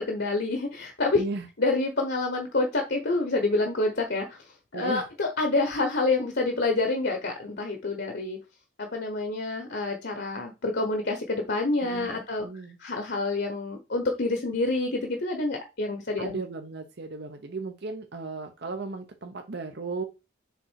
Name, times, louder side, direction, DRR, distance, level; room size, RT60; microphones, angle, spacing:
voice 1, 0.0-1.2 1.6-8.4 8.8-12.5 12.8-16.4, left 2 dB, 55° left, 4 dB, 1.1 m, -27 dB
voice 2, 4.7-5.0 11.8-12.8 16.2-20.0, right 3 dB, 55° right, 5 dB, 0.8 m, -35 dB
6.9 x 3.8 x 4.6 m, 0.28 s
head